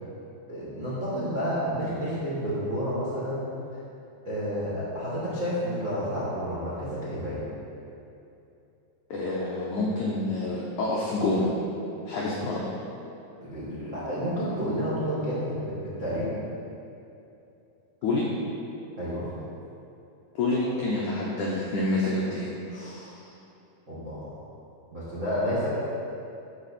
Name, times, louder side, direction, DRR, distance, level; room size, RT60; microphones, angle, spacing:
voice 1, 0.5-3.5 4.2-7.4 13.4-16.3 19.0-19.3 22.7-23.3 23.9-24.3 24.9-25.7, equal, 55° right, -9 dB, 0.8 m, -30 dB
voice 2, 9.1-11.5 12.1-12.7 18.0-18.3 20.4-22.5, left 2 dB, 80° left, -5 dB, 1.7 m, -27 dB
13.5 x 4.8 x 4.3 m, 2.7 s
omnidirectional pair, 4.6 m